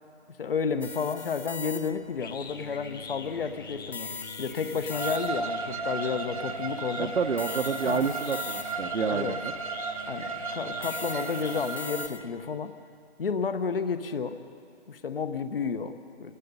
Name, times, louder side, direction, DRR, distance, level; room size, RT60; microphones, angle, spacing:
voice 1, 0.4-4.1 4.4-7.1 7.8-8.1 9.1-9.4 10.1-12.7 13.2-14.4 14.9-16.3, left 5 dB, 55° left, 10 dB, 1.2 m, -31 dB
sound 1, 0.8-2.2 3.9-5.6 7.4-9.0 10.8-12.5, left 4 dB, 85° left, 1.4 m, -41 dB
sound 2, 1.7-12.1, left 4 dB, 20° left, 0.8 m, -44 dB
Bowed string instrument, 4.9-12.1, right 4 dB, 30° right, 0.7 m, -34 dB
voice 2, 7.0-9.5, right 5 dB, 75° right, 5 dB, 1.0 m, -29 dB
29.0 x 19.5 x 5.5 m, 2.4 s
figure-of-eight pair, 155°, 35 cm